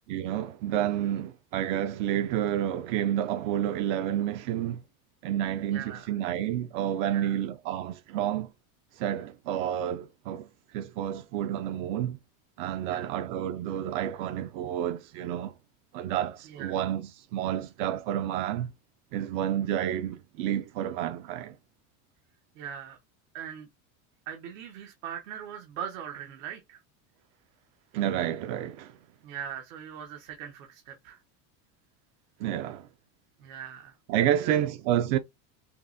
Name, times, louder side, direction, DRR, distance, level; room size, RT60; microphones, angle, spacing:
voice 1, 0.1-4.8 5.2-8.5 9.0-10.5 10.7-12.2 12.6-15.5 15.9-18.7 19.1-21.5 27.9-28.9 32.4-32.9 34.1-35.2, right 11 dB, 75° right, 0.5 m, -29 dB
voice 2, 5.7-6.1 7.1-7.4 12.8-13.1 16.5-16.9 22.6-23.0 23.3-23.7 24.3-26.8 29.2-31.2 33.4-34.6, right 9 dB, 90° right, 1.1 m, -41 dB
5.7 x 2.1 x 2.5 m
supercardioid pair, 135°, 39 cm